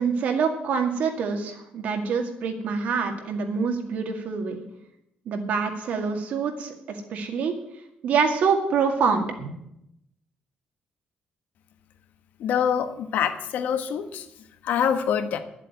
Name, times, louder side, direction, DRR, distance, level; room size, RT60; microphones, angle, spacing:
voice 1, 0.0-4.6 5.3-7.5 8.0-9.6, right 5 dB, 60° right, 4 dB, 2.1 m, -26 dB
voice 2, 12.4-14.2 14.6-15.4, left 8 dB, 70° left, 9 dB, 1.2 m, -25 dB
11.5 x 7.5 x 9.3 m, 0.80 s
cardioid pair, 175°, 3 cm